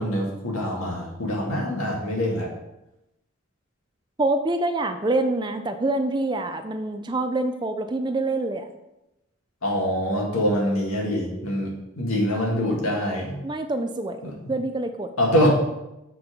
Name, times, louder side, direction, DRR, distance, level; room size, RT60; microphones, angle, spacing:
voice 1, 0.0-2.5 9.6-11.7 12.0-13.4 14.2-14.3 15.2-15.5, equal, 90° left, -1 dB, 2.1 m, -24 dB
voice 2, 4.2-8.7 13.4-15.1, right 2 dB, 20° right, 7 dB, 0.4 m, -26 dB
7.3 x 4.5 x 5.2 m, 0.92 s
head